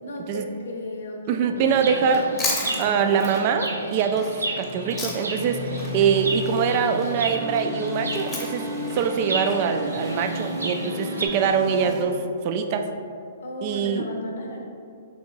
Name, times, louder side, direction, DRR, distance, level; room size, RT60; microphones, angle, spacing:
voice 1, 0.0-2.3 13.4-14.6, left 1 dB, 70° left, 1 dB, 0.7 m, -35 dB
voice 2, 1.3-2.2 2.8-8.6 8.9-12.9 13.6-14.1, right 6 dB, 40° right, 6 dB, 0.3 m, -23 dB
Chirp tweet, 1.6-11.3, right 2 dB, 90° right, 0.6 m, -33 dB
Chewing mastication, 2.0-5.5 5.8-10.1, left 3 dB, 20° left, 0.8 m, -34 dB
sound 1, 4.5-12.0, left 2 dB, 25° right, 0.8 m, -34 dB
3.5 x 2.9 x 3.9 m, 2.4 s
hypercardioid pair, 125°, 0 cm